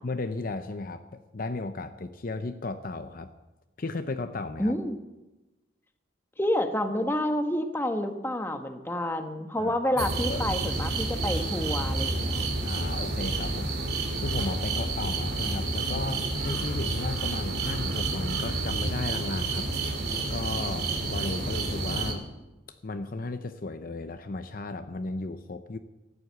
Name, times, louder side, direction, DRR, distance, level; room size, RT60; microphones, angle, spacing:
voice 1, 0.0-3.3 3.8-4.7 9.6-10.5 12.6-13.7 14.1-19.7 20.3-22.3 22.7-25.8, left 3 dB, 45° left, 9 dB, 0.6 m, -35 dB
voice 2, 4.6-5.0 6.4-12.4, left 1 dB, 10° left, 6 dB, 1.1 m, -29 dB
sound 1, 10.0-22.1, right 2 dB, 55° right, 2.5 m, -29 dB
14.5 x 11.0 x 8.1 m, 1.1 s
head